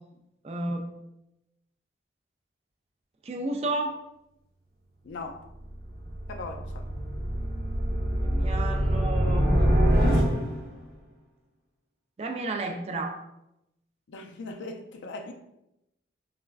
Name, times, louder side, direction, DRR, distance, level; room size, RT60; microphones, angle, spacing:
voice 1, 0.4-0.9 3.2-3.9 8.2-9.5 12.2-13.1, right 2 dB, 35° right, 3 dB, 0.3 m, -31 dB
voice 2, 5.0-5.5 6.3-6.9 14.1-15.3, left 3 dB, 90° left, 4 dB, 0.4 m, -39 dB
sound 1, 5.5-10.8, equal, 55° right, 0.7 m, -25 dB
3.2 x 2.4 x 2.3 m, 0.85 s
head